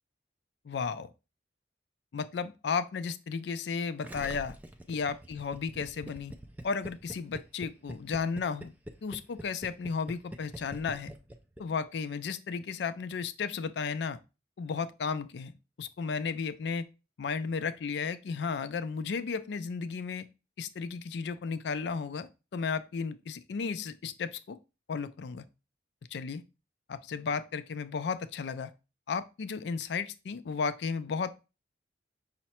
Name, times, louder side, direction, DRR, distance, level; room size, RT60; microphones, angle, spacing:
voice 1, 0.6-1.1 2.1-4.6 4.9-6.3 6.6-8.7 9.0-11.1 11.6-14.2 14.6-15.5 15.8-16.9 17.2-20.3 20.6-24.6 24.9-25.4 26.1-26.4 26.9-28.7 29.1-31.3, left 5 dB, 70° left, 0.4 m, -34 dB
Gurgling, 4.0-11.9, right 1 dB, 10° right, 0.3 m, -44 dB
5.6 x 2.1 x 4.2 m
head